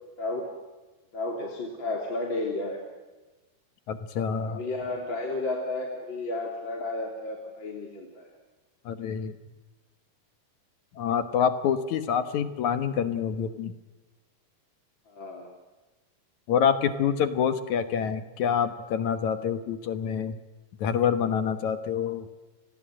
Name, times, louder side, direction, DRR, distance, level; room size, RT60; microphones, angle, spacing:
voice 1, 0.2-0.5 1.1-2.8 4.5-8.3 15.1-15.5, left 2 dB, 30° left, 1 dB, 3.5 m, -32 dB
voice 2, 3.9-4.6 8.9-9.3 11.0-13.7 16.5-20.4 20.8-22.3, left 7 dB, 60° left, 11 dB, 2.2 m, -26 dB
30.0 x 21.0 x 7.6 m, 1.2 s
omnidirectional pair, 4.4 m